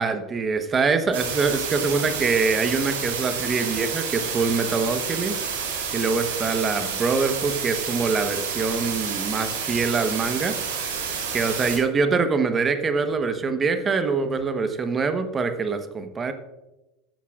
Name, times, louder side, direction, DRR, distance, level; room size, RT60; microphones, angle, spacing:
voice 1, 0.0-5.4 5.9-10.6 11.3-16.3, right 4 dB, 25° right, 8 dB, 1.1 m, -24 dB
sound 1, 1.1-11.8, right 6 dB, 70° right, 3.2 m, -29 dB
14.5 x 10.5 x 2.4 m, 1.0 s
hypercardioid pair, 80°, 0 cm